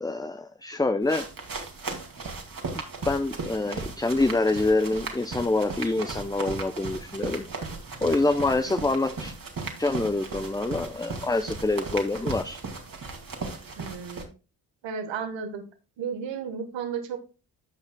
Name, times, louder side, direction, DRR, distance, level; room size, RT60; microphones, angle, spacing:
voice 1, 0.0-1.3 3.1-7.5 8.0-9.3 9.8-12.6, left 2 dB, 10° left, 9 dB, 0.6 m, -26 dB
sound 1, 1.0-14.2, right 3 dB, 50° right, 2.4 m, -36 dB
voice 2, 13.8-14.3 14.8-15.6 16.0-17.2, right 6 dB, 85° right, 7 dB, 1.4 m, -33 dB
14.5 x 5.5 x 2.3 m, 0.32 s
supercardioid pair, 40°, 43 cm